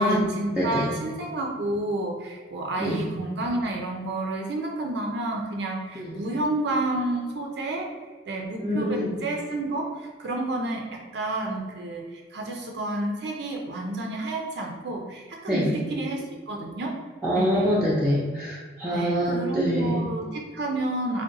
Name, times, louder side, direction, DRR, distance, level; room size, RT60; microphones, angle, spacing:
voice 1, 0.0-8.0 8.3-17.0 17.3-17.9 18.9-21.2, right 2 dB, 60° right, 1 dB, 0.4 m, -30 dB
voice 2, 0.6-1.0 2.8-3.0 6.0-6.2 8.6-9.1 15.5-15.7 17.2-20.0, equal, 5° right, -8 dB, 0.5 m, -25 dB
3.6 x 2.1 x 3.9 m, 1.5 s
head